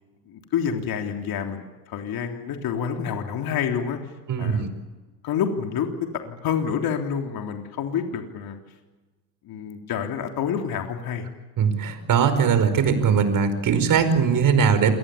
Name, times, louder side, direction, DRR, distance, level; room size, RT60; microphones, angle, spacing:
voice 1, 0.3-4.0 4.4-4.7 5.2-5.9 6.1-8.6 9.4-11.3, left 7 dB, 45° left, 4 dB, 3.5 m, -28 dB
voice 2, 4.3-4.7 11.6-14.9, right 6 dB, 40° right, 11 dB, 5.2 m, -20 dB
27.0 x 19.5 x 8.6 m, 1.2 s
supercardioid pair, 100°, 48 cm